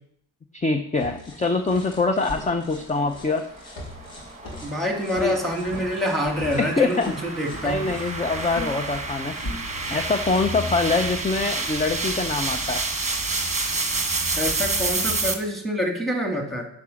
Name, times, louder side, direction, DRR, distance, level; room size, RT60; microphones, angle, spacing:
voice 1, 0.5-3.5 5.2-5.3 6.6-7.1 7.6-9.4 9.9-12.8, left 3 dB, 15° left, 7 dB, 0.5 m, -24 dB
sound 1, 1.0-15.3, left 1 dB, 80° left, 3.4 m, -38 dB
sound 2, 3.3-15.3, right 3 dB, 15° right, 1.1 m, -29 dB
voice 2, 4.6-7.8 14.4-16.7, equal, ahead, 2 dB, 1.8 m, -26 dB
11.0 x 4.8 x 6.2 m, 0.72 s
cardioid pair, 130°, 44 cm